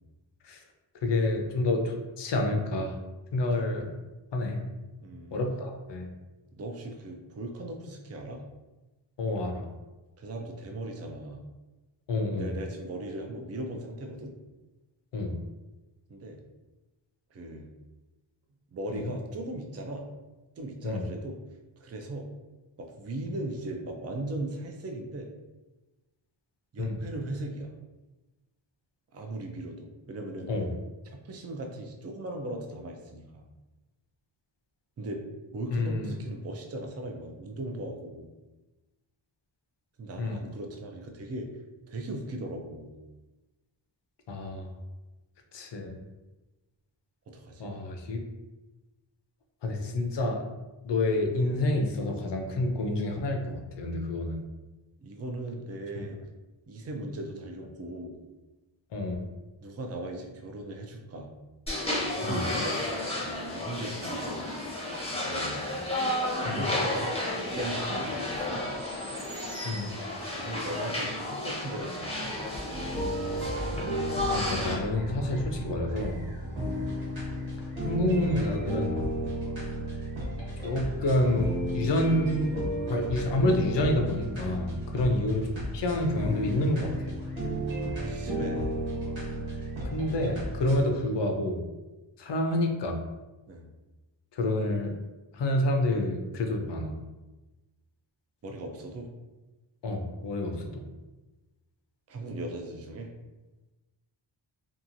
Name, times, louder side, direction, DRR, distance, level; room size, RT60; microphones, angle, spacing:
voice 1, 1.0-3.0 3.3-3.9 4.3-4.6 5.3-6.1 9.2-9.7 12.1-12.5 15.1-15.4 18.9-19.1 20.8-21.0 26.8-27.0 30.5-30.7 35.7-36.1 40.2-40.4 44.3-44.7 45.5-46.0 47.6-48.2 49.6-50.4 50.8-54.4 55.9-56.1 58.9-59.3 62.2-62.4 66.4-66.7 69.6-69.9 74.3-76.2 77.8-79.0 80.6-82.6 82.9-87.2 89.8-91.6 92.2-93.0 94.3-94.9 95.3-96.9 99.8-100.8, left 1 dB, 60° left, 3 dB, 0.6 m, -28 dB
voice 2, 5.0-5.4 6.6-8.4 10.2-11.4 12.4-14.3 16.1-16.4 17.3-17.7 18.7-20.1 20.6-21.4 21.8-22.3 22.8-25.3 26.7-27.7 29.1-30.5 31.1-33.4 35.0-35.2 35.5-38.3 40.0-41.5 41.9-42.9 47.3-47.8 55.0-56.2 56.7-58.2 59.6-61.3 62.1-64.4 65.1-65.7 66.4-67.1 67.5-68.7 70.3-72.4 76.4-76.6 79.2-79.4 85.0-85.1 88.0-88.8 93.5-93.7 98.4-99.1 102.1-103.1, right 1 dB, 35° right, 2 dB, 0.4 m, -38 dB
sound 1, 61.7-74.7, left 1 dB, 15° left, 0.7 m, -32 dB
sound 2, 72.7-90.8, right 1 dB, 75° right, 1.3 m, -33 dB
2.9 x 2.3 x 2.5 m, 1.1 s
wide cardioid pair, 75°, 48 cm